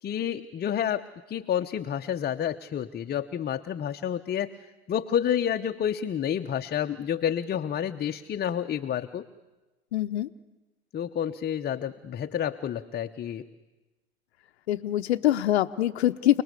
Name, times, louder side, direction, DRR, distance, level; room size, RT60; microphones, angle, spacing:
voice 1, 0.0-4.5 4.9-9.3 10.9-13.5, left 9 dB, 30° left, 7 dB, 0.9 m, -29 dB
voice 2, 9.9-10.3 14.7-16.4, left 13 dB, 85° left, 8 dB, 0.8 m, -24 dB
29.0 x 20.0 x 8.3 m, 1.1 s
hypercardioid pair, 85°, 32 cm